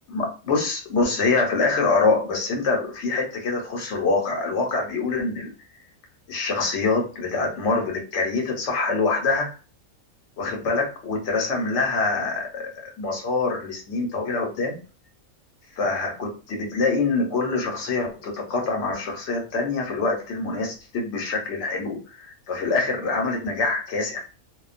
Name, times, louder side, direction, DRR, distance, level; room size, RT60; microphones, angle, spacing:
voice 1, 0.1-5.5 6.3-9.5 10.4-14.8 15.8-24.2, left 3 dB, 55° left, 0 dB, 1.0 m, -25 dB
2.4 x 2.2 x 2.5 m, 0.34 s
omnidirectional pair, 1.5 m